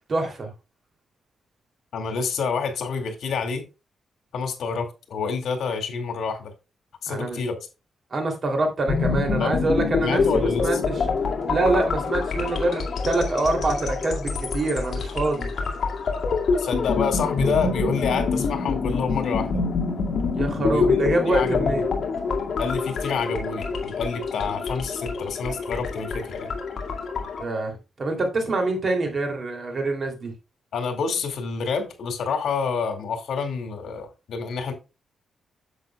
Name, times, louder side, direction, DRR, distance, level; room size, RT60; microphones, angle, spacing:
voice 1, 0.1-0.5 7.1-7.4 8.1-11.0 11.5-15.5 20.3-21.9 27.4-30.3, right 2 dB, 40° right, 2.9 m, -25 dB
voice 2, 1.9-3.6 4.3-6.5 7.0-7.6 9.4-9.5 10.0-10.8 16.6-19.6 20.6-21.8 22.6-26.5 30.7-34.7, left 5 dB, 75° left, 2.2 m, -28 dB
sound 1, 8.9-27.4, left 4 dB, 55° left, 2.1 m, -26 dB
10.0 x 7.5 x 2.3 m
wide cardioid pair, 140°, 0 cm